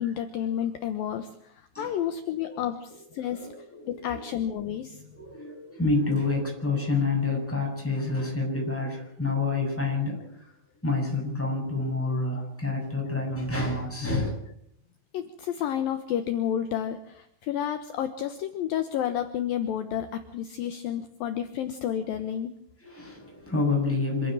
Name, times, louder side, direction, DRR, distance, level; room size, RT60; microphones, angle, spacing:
voice 1, 0.0-3.5 3.9-5.0 15.1-22.5, left 10 dB, 70° left, 8 dB, 2.7 m, -31 dB
voice 2, 3.2-4.3 5.1-10.5 10.8-14.3 22.8-24.3, left 3 dB, 5° left, -1 dB, 7.3 m, -28 dB
26.5 x 12.5 x 8.9 m, 0.70 s
omnidirectional pair, 4.8 m